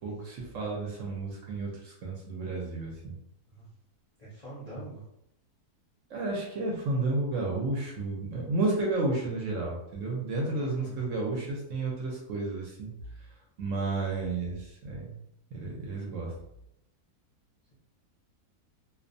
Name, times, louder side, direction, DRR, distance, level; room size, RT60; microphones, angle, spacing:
voice 1, 0.0-3.1 6.1-12.9 13.6-15.1 15.5-16.3, right 2 dB, 65° right, -2 dB, 0.8 m, -32 dB
voice 2, 4.2-5.0 10.6-10.9, right 1 dB, 45° left, -9 dB, 0.5 m, -45 dB
2.5 x 2.1 x 2.5 m, 0.81 s
omnidirectional pair, 1.6 m